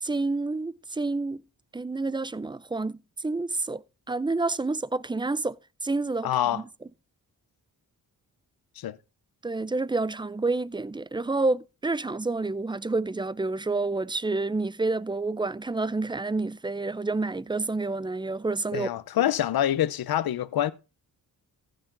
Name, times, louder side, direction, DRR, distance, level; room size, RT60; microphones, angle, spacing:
voice 1, 0.0-1.4 1.7-3.8 4.1-5.6 5.8-6.6 9.4-18.9, right 3 dB, 15° right, 0.4 m, -29 dB
voice 2, 6.2-6.6 8.8-9.0 18.7-20.7, left 11 dB, 70° left, 0.8 m, -26 dB
15.0 x 6.9 x 3.9 m
cardioid pair, 95°, 38 cm